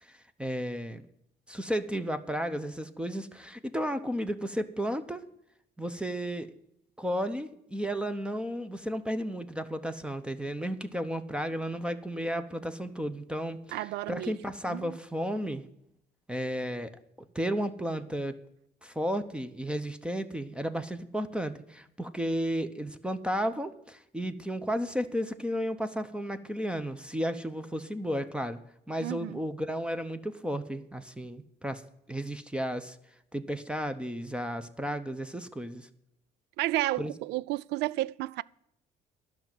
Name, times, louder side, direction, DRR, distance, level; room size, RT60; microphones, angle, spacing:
voice 1, 0.0-1.0 1.5-5.2 5.8-6.5 7.0-15.6 16.3-17.0 17.3-18.4 18.8-28.6 28.9-31.8 32.1-33.0 33.3-35.9 37.0-37.1, equal, 5° right, 0.8 m, -33 dB
voice 2, 13.7-14.4 14.7-15.0 29.0-29.4 36.6-38.4, right 17 dB, 85° right, 0.4 m, -32 dB
11.5 x 6.1 x 9.0 m
cardioid pair, 110°, 17 cm